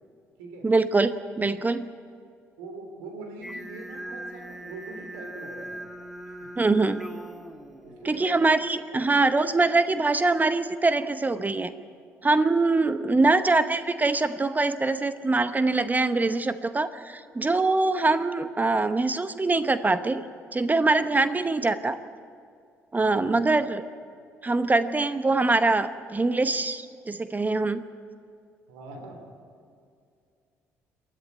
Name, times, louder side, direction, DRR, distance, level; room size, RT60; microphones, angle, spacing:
voice 1, 0.6-1.9 6.6-7.0 8.0-11.7 12.2-20.2 20.5-22.0 22.9-23.8 24.4-27.8, right 3 dB, 20° right, 12 dB, 0.9 m, -23 dB
voice 2, 2.6-5.8 6.3-6.5 7.8-8.4 8.9-9.0 23.0-23.4 28.7-29.2, right 3 dB, 75° right, 3 dB, 3.2 m, -42 dB
Singing, 3.4-8.5, right 1 dB, 5° right, 1.9 m, -41 dB
28.0 x 11.0 x 9.4 m, 2.3 s
figure-of-eight pair, 50°, 8 cm